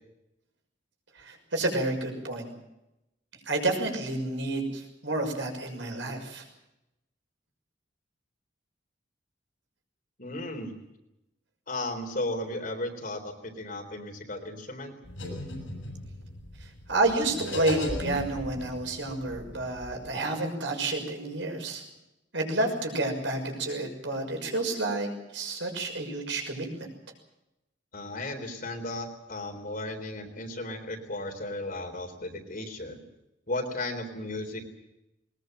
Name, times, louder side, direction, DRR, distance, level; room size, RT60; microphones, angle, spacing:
voice 1, 1.2-2.5 3.5-6.4 16.9-21.8 22.3-26.9, right 2 dB, 70° right, 3 dB, 6.3 m, -30 dB
voice 2, 10.2-10.7 11.7-14.9 27.9-33.0 33.5-34.7, left 2 dB, 50° left, 5 dB, 3.9 m, -35 dB
sound 1, 15.0-20.1, left 1 dB, 80° left, 8.0 m, -37 dB
21.5 x 20.5 x 7.8 m, 0.91 s
head